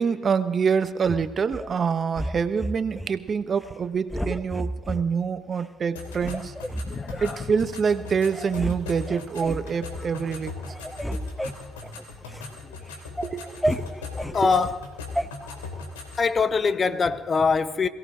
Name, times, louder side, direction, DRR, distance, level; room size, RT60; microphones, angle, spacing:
voice 1, 0.0-6.5 7.2-10.5 13.2-13.9 14.4-14.5, right 6 dB, 45° right, 1.0 m, -26 dB
sound 1, 1.0-1.7 2.1-3.1 3.5-3.8 4.1-5.0 5.6-5.7 6.2-7.3 7.9-8.0 8.3-8.8 9.1-9.7 10.1-10.4 10.7-12.5 12.9-14.4 15.2-15.3, equal, 5° left, 0.9 m, -32 dB
sound 2, 5.9-16.3, left 3 dB, 90° left, 2.9 m, -39 dB
voice 2, 6.8-7.4 10.0-10.1 12.6-12.8 13.9-14.8 15.4-15.6 16.2-17.9, left 5 dB, 40° left, 0.9 m, -24 dB
22.0 x 17.0 x 3.8 m
hypercardioid pair, 55°, 0 cm